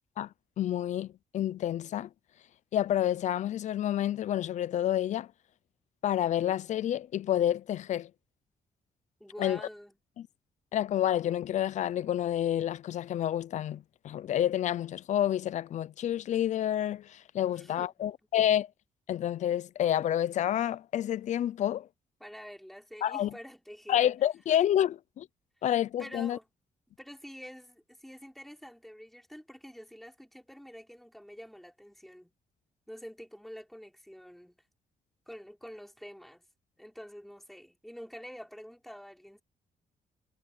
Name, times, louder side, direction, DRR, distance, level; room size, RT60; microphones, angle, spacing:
voice 1, 0.2-2.1 2.7-5.3 6.0-8.1 9.4-9.6 10.2-10.3 10.7-18.7 19.1-21.9 23.0-23.3 23.9-25.3 25.6-26.4, left 11 dB, 60° left, 0.5 m, -29 dB
voice 2, 9.2-10.0 17.5-18.1 22.2-24.0 26.0-26.4 27.0-32.3 32.9-34.6 35.3-36.5 36.8-39.4, equal, ahead, 5.8 m, -47 dB
cardioid pair, 150°, 14 cm